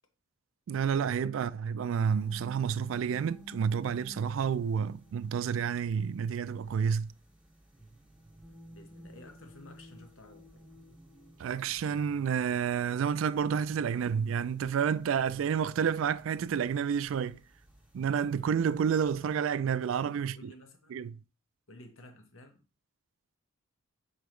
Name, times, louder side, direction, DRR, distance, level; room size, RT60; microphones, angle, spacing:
voice 1, 0.7-7.1 11.4-17.4 17.9-20.5 20.9-21.1, right 7 dB, 70° right, 0.3 m, -30 dB
sound 1, 2.1-19.4, right 1 dB, 5° right, 1.6 m, -54 dB
voice 2, 8.7-10.7 20.2-20.9 21.7-22.6, left 1 dB, 75° left, 1.1 m, -53 dB
6.8 x 4.7 x 3.1 m
head